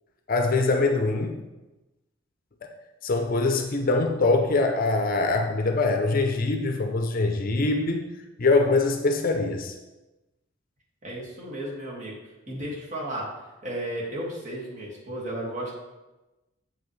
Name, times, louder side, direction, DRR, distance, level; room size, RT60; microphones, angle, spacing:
voice 1, 0.3-1.4 3.0-8.1 8.4-9.7, left 3 dB, 45° left, 5 dB, 0.6 m, -23 dB
voice 2, 11.0-12.2 12.5-13.3 13.6-15.7, right 1 dB, 35° right, -4 dB, 1.9 m, -34 dB
7.3 x 5.5 x 3.2 m, 1.1 s
head